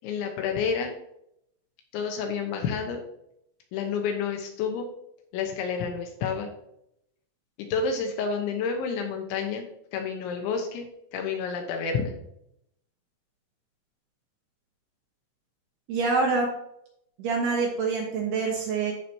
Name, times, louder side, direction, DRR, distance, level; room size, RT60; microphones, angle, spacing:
voice 1, 0.0-0.9 1.9-3.0 3.7-4.9 5.3-6.5 7.6-9.7 9.9-10.8 11.1-12.1, left 6 dB, 75° left, 3 dB, 3.1 m, -29 dB
voice 2, 15.9-16.5 17.2-18.9, right 4 dB, 70° right, 0 dB, 2.7 m, -26 dB
14.0 x 5.0 x 2.8 m, 0.76 s
omnidirectional pair, 5.8 m